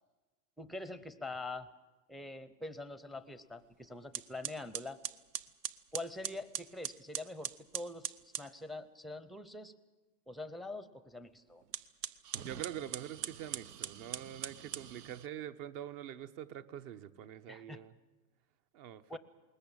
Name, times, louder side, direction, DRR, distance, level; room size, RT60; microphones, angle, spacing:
voice 1, 0.6-1.7 2.1-5.0 5.9-9.7 10.3-11.6 17.5-17.8 19.1-19.2, left 2 dB, ahead, 13 dB, 0.7 m, -44 dB
sound 1, 3.6-3.7 4.1-8.5 11.6-15.3, right 10 dB, 80° right, 1.0 m, -42 dB
voice 2, 12.4-17.9 18.7-19.2, right 10 dB, 45° right, 11 dB, 1.2 m, -45 dB
21.0 x 19.5 x 8.9 m, 1.2 s
hypercardioid pair, 125°, 47 cm